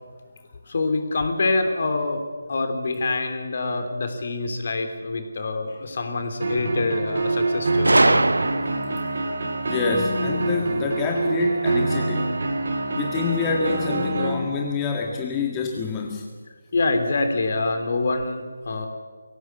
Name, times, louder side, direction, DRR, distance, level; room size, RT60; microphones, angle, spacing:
voice 1, 0.7-2.2 2.5-8.2 11.7-11.8 16.7-18.9, left 3 dB, 50° left, 6 dB, 3.3 m, -25 dB
sound 1, 6.4-14.4, right 2 dB, 55° right, 3.7 m, -25 dB
Gunshot gunfire, 7.8-9.1, right 2 dB, 75° right, 0.8 m, -20 dB
voice 2, 9.7-12.3 13.0-16.3, left 4 dB, 15° left, 0 dB, 1.8 m, -27 dB
23.5 x 17.0 x 8.3 m, 1.5 s
figure-of-eight pair, 155°, 0 cm